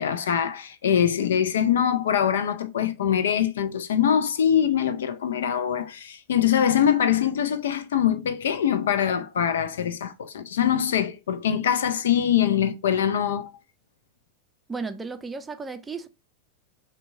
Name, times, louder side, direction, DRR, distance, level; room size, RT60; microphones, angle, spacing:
voice 1, 0.0-13.5, left 9 dB, 60° left, 0.5 m, -23 dB
voice 2, 14.7-16.1, right 4 dB, 10° right, 0.5 m, -34 dB
6.6 x 2.2 x 3.5 m
figure-of-eight pair, 90°, 0 cm